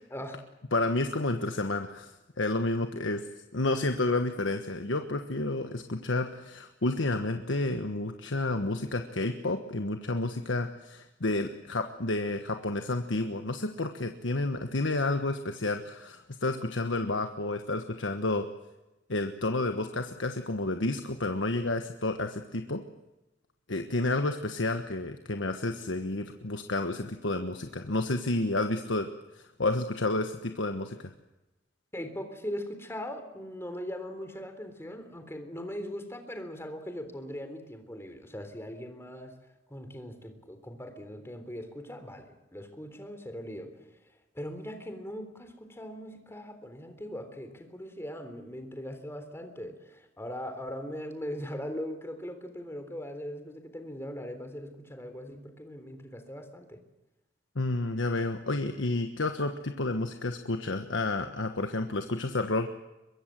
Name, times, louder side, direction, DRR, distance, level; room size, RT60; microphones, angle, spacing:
voice 1, 0.1-0.4 31.9-39.3 39.7-43.7 44.3-56.8, equal, 15° left, 7 dB, 3.6 m, -40 dB
voice 2, 0.7-3.2 3.5-18.5 19.1-22.8 23.7-29.1 29.3-31.1 57.5-62.7, left 2 dB, 85° left, 6 dB, 1.4 m, -30 dB
23.5 x 22.0 x 7.7 m, 1.0 s
head